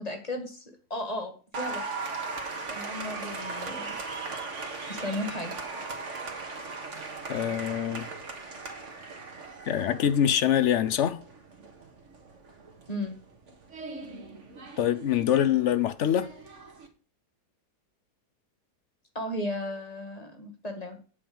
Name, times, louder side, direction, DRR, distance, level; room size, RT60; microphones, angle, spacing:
voice 1, 0.0-1.8 2.7-4.0 4.9-5.5 12.9-13.1 19.2-21.0, left 1 dB, 25° left, 1.8 m, -35 dB
Applause, 1.5-16.9, right 4 dB, 50° right, 1.8 m, -39 dB
voice 2, 7.3-8.1 9.7-11.2 14.8-16.3, left 10 dB, 60° left, 0.9 m, -24 dB
8.6 x 5.2 x 7.1 m
omnidirectional pair, 1.7 m